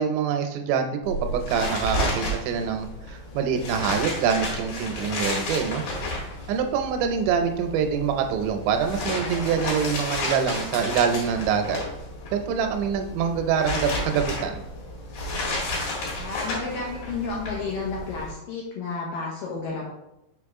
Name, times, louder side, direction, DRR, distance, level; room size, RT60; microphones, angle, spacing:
voice 1, 0.0-5.8 6.5-11.8 12.3-14.6, right 7 dB, 85° right, 6 dB, 2.9 m, -25 dB
sound 1, 1.0-18.3, left 1 dB, 55° left, 2.9 m, -32 dB
voice 2, 16.2-19.8, left 4 dB, 75° left, -3 dB, 2.1 m, -31 dB
6.4 x 5.0 x 3.6 m, 0.88 s
omnidirectional pair, 5.0 m